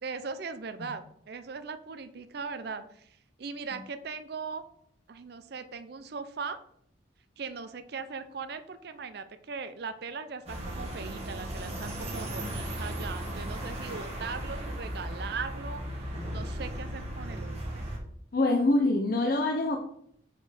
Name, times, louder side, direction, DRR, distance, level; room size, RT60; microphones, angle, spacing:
voice 1, 0.0-3.1 3.4-4.6 5.1-6.6 7.4-15.8 16.3-17.9, right 5 dB, 55° right, 10 dB, 0.5 m, -39 dB
sound 1, 10.5-18.0, right 1 dB, 35° right, 1.6 m, -36 dB
voice 2, 18.3-19.8, left 2 dB, 45° left, 2 dB, 0.6 m, -25 dB
5.0 x 4.4 x 4.9 m, 0.68 s
head